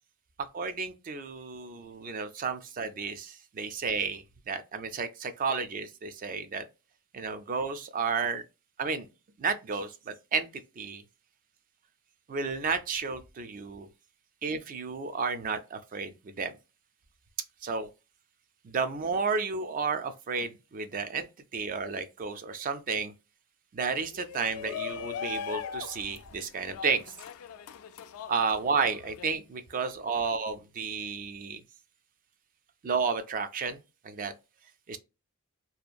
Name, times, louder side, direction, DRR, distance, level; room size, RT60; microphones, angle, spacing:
voice 1, 0.5-6.6 7.1-8.4 8.8-9.1 9.4-10.5 10.8-11.0 12.3-13.9 14.4-16.5 17.6-17.9 18.6-21.3 21.5-23.1 23.7-27.0 28.3-31.6 32.8-33.8 34.0-34.3 34.9-35.0, right 5 dB, 40° right, 0.3 m, -32 dB
Shout, 24.1-29.2, left 8 dB, 70° left, 0.3 m, -39 dB
2.8 x 2.4 x 2.2 m
head